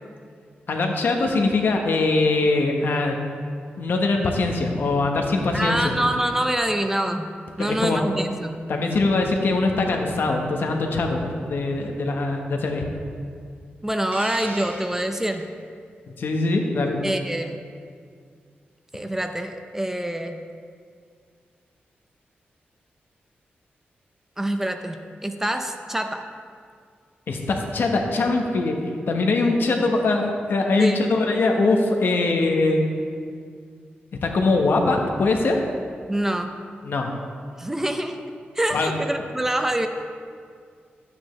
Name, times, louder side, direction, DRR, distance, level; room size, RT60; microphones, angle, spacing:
voice 1, 0.7-3.2 3.8-5.9 7.6-8.0 8.7-12.8 16.2-17.0 27.3-28.8 29.1-32.8 34.2-35.6 36.8-37.1 38.7-38.9, left 3 dB, 70° left, 2 dB, 1.1 m, -22 dB
voice 2, 5.5-7.3 7.6-8.6 13.8-15.5 17.0-17.6 18.9-20.4 24.4-26.3 30.8-31.1 36.1-36.6 37.6-38.2 38.5-39.9, right 1 dB, 10° right, 6 dB, 0.5 m, -25 dB
Hiss, 14.1-15.5, right 2 dB, 60° right, 1.5 m, -39 dB
12.5 x 8.7 x 3.2 m, 2.2 s
wide cardioid pair, 110°, 4 cm